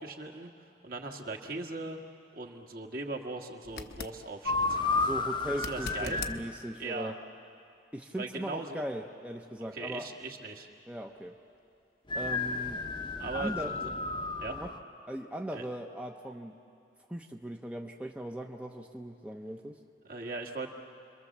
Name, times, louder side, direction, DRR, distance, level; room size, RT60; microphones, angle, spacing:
voice 1, 0.0-2.0 2.3-4.8 5.5-6.2 6.8-7.1 8.2-8.8 9.6-10.7 13.2-13.9 14.4-14.6 15.5-15.6 20.0-20.7, right 3 dB, 50° right, 2 dB, 1.7 m, -39 dB
sound 1, 3.6-4.2 5.5-6.4 9.4-9.5, left 4 dB, 55° left, 1.0 m, -40 dB
sound 2, 4.5-6.4 12.1-14.8, left 3 dB, 25° left, 0.9 m, -32 dB
voice 2, 5.0-7.2 7.9-10.1 10.9-11.4 12.1-12.8 13.3-13.7 14.5-14.7 15.1-16.6 17.1-19.8, right 1 dB, 5° right, 2 dB, 0.7 m, -39 dB
29.5 x 23.0 x 7.3 m, 2.5 s
head